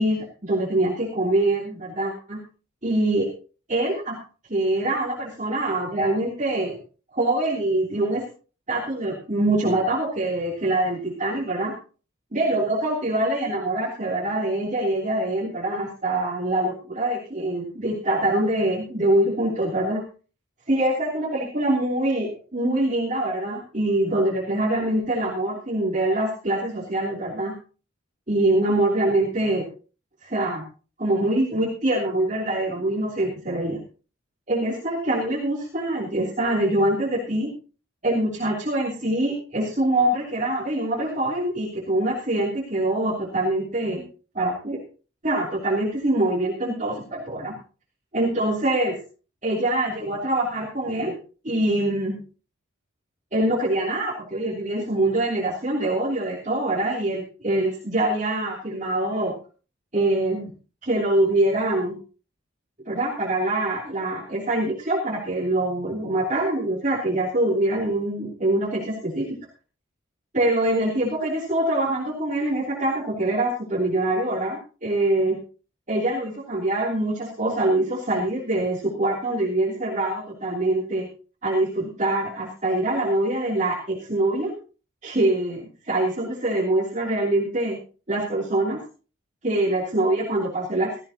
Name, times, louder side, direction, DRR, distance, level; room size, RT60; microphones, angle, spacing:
voice 1, 0.0-2.4 2.8-3.3 3.7-4.2 4.5-6.8 7.1-8.2 8.7-11.7 12.3-20.0 20.7-27.5 28.3-29.6 30.2-30.6 31.0-33.8 34.5-37.5 38.0-44.0 44.3-44.8 45.2-47.5 48.1-48.9 49.4-51.1 51.4-52.1 53.3-59.3 59.9-60.5 60.8-61.9 62.9-69.3 70.3-75.4 75.9-81.1 81.4-84.5 85.0-87.8 88.1-88.8 89.4-91.0, right 1 dB, 35° right, -3 dB, 3.0 m, -24 dB
16.0 x 14.5 x 2.9 m, 0.37 s
head